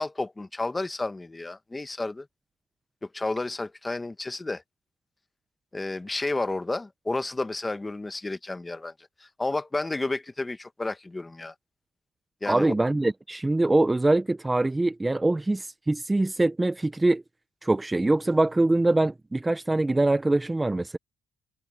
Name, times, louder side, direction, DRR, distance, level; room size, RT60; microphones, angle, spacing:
voice 1, 0.0-2.3 3.0-4.6 5.7-8.9 9.2-11.5 12.4-12.8, left 2 dB, 15° left, 1.4 m, -31 dB
voice 2, 12.5-17.2 17.6-21.0, right 2 dB, 15° right, 0.8 m, -23 dB
cardioid pair, 100°, 0 cm